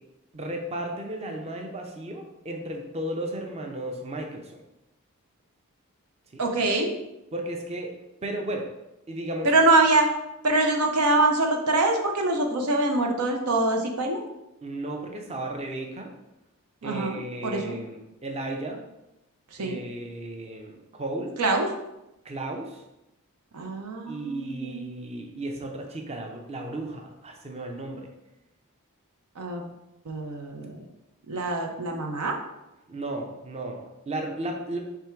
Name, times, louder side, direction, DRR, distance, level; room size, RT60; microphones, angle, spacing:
voice 1, 0.3-4.6 6.3-6.7 7.3-7.9 8.2-8.7 9.1-9.5 14.6-16.1 16.8-18.8 19.6-21.3 22.2-22.8 24.1-28.1 32.9-34.8, right 1 dB, 30° right, 2 dB, 0.5 m, -34 dB
voice 2, 6.4-6.9 9.4-10.1 10.4-14.2 16.8-17.7 19.6-19.8 21.4-21.7 23.5-24.8 29.4-29.6 30.1-30.8 31.3-32.3, right 2 dB, 90° right, 3 dB, 0.7 m, -24 dB
3.5 x 3.4 x 4.5 m, 0.92 s
head